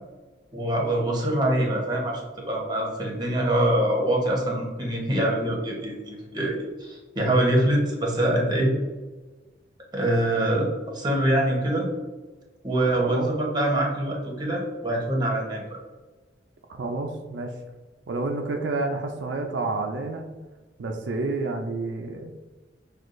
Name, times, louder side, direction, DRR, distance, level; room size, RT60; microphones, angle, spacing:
voice 1, 0.5-8.7 9.9-11.9 12.6-15.6, right 1 dB, 25° right, -1 dB, 0.9 m, -24 dB
voice 2, 16.8-17.5 18.1-20.3 20.8-22.3, right 3 dB, 75° right, 3 dB, 0.4 m, -29 dB
6.1 x 2.3 x 2.5 m, 1.2 s
head